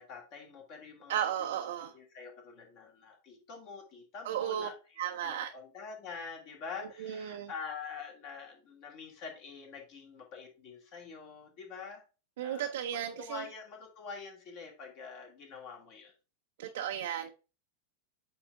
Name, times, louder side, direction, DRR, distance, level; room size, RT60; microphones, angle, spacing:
voice 1, 0.0-12.0 12.4-12.7 13.2-16.1, left 5 dB, 45° left, 2.2 m, -46 dB
voice 2, 1.1-1.9 4.2-4.7 5.0-5.5 7.0-7.5 12.4-13.4 16.6-17.3, right 10 dB, 55° right, 0.6 m, -34 dB
8.5 x 3.5 x 3.7 m
figure-of-eight pair, 90°, 0 cm